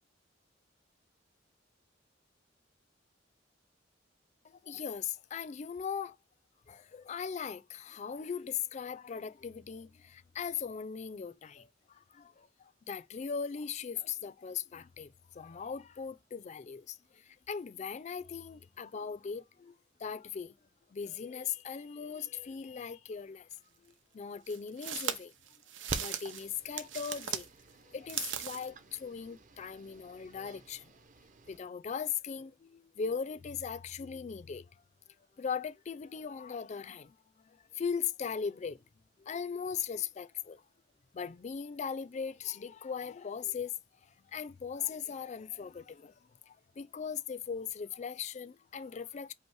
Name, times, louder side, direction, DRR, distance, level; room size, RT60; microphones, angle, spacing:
voice 1, 4.4-6.2 6.7-19.7 20.0-20.6 20.9-23.5 23.8-25.3 25.9-27.5 27.9-30.9 31.5-34.7 35.4-38.8 39.2-40.6 41.1-49.3, left 7 dB, 40° left, 0.4 m, -39 dB
sound 1, 23.5-23.6 24.5-27.5 27.9-28.7, right 9 dB, 90° right, 0.8 m, -38 dB
sound 2, 25.9-31.6, right 2 dB, 45° right, 0.7 m, -49 dB
5.2 x 2.1 x 4.6 m
head